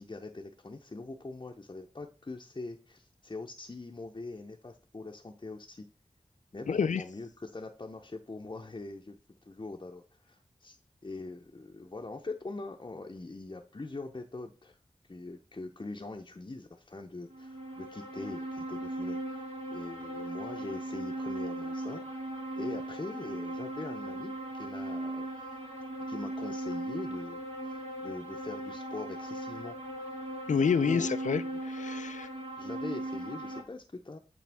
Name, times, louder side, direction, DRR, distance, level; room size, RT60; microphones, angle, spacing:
voice 1, 0.0-5.9 6.5-9.2 9.4-10.8 11.0-14.7 15.1-19.5 19.7-22.0 22.6-25.3 26.1-29.8 30.5-31.1 31.5-31.6 32.6-34.2, left 3 dB, 35° left, 0.7 m, -42 dB
voice 2, 6.7-7.0 30.5-32.3, left 6 dB, 80° left, 0.4 m, -28 dB
sound 1, 17.3-33.6, right 1 dB, 65° right, 1.9 m, -38 dB
8.6 x 3.4 x 3.4 m
wide cardioid pair, 45°, 13 cm